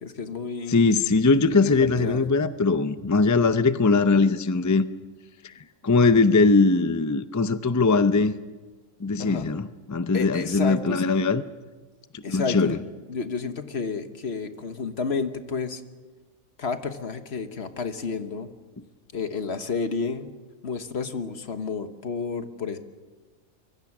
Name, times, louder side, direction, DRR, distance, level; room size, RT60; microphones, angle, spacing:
voice 1, 0.0-0.8 1.5-2.2 9.2-9.5 10.1-11.0 12.2-12.8 13.1-15.8 16.6-18.5 19.1-20.3 20.6-22.8, left 5 dB, 50° left, 8 dB, 1.5 m, -31 dB
voice 2, 0.7-4.8 5.4-5.5 5.8-8.3 9.0-11.4 12.3-12.8, left 3 dB, 30° left, 11 dB, 0.3 m, -21 dB
25.0 x 22.5 x 6.1 m, 1.3 s
omnidirectional pair, 1.4 m